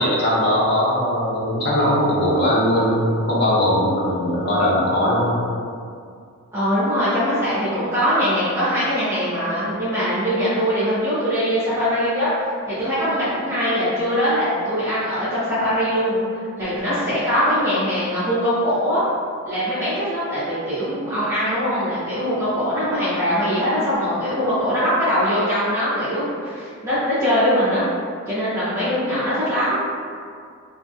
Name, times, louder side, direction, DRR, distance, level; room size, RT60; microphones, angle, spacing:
voice 1, 0.0-5.4, equal, 45° left, -6 dB, 0.6 m, -19 dB
voice 2, 6.5-16.2 16.6-19.0 19.4-27.8 28.3-29.8, equal, 15° right, -15 dB, 0.6 m, -22 dB
2.7 x 2.5 x 2.3 m, 2.2 s
head